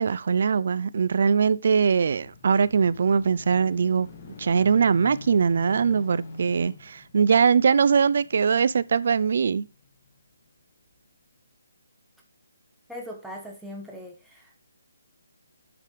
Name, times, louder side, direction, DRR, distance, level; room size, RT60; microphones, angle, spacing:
voice 1, 0.0-4.1 4.4-9.7, right 6 dB, 55° right, 0.6 m, -21 dB
sound 1, 1.6-10.2 10.8-10.9, left 3 dB, 35° left, 2.3 m, -46 dB
voice 2, 12.9-14.5, equal, ahead, 1.8 m, -40 dB
9.6 x 5.5 x 5.0 m
hypercardioid pair, 160°, 0 cm